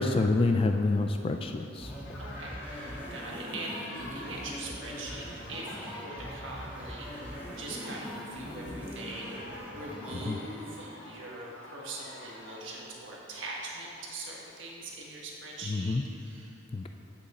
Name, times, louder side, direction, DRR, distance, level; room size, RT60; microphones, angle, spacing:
voice 1, 0.0-2.2 10.3-10.4 15.7-16.0 16.7-16.9, left 3 dB, 30° left, 5 dB, 0.3 m, -27 dB
sound 1, 1.8-10.2, equal, 10° right, 1.9 m, -41 dB
sound 2, 2.0-12.9, left 1 dB, 75° left, 1.6 m, -49 dB
voice 2, 2.2-16.6, right 2 dB, 75° right, -3 dB, 1.4 m, -42 dB
9.7 x 8.0 x 4.2 m, 3.0 s
head